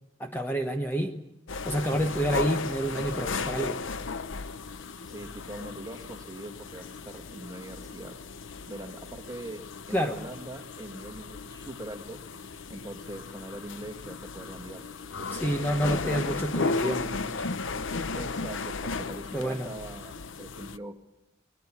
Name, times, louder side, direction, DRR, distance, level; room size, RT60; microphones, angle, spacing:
voice 1, 0.2-1.2 1.6-3.8 9.9-10.2 15.3-17.5 19.3-19.7, right 1 dB, 10° left, 5 dB, 1.1 m, -29 dB
sound 1, 1.5-20.8, left 4 dB, 70° left, 0.8 m, -35 dB
voice 2, 5.1-8.2 8.7-12.2 12.7-16.2 18.1-21.0, right 1 dB, 20° right, 5 dB, 1.9 m, -42 dB
24.0 x 21.0 x 8.6 m, 0.90 s
head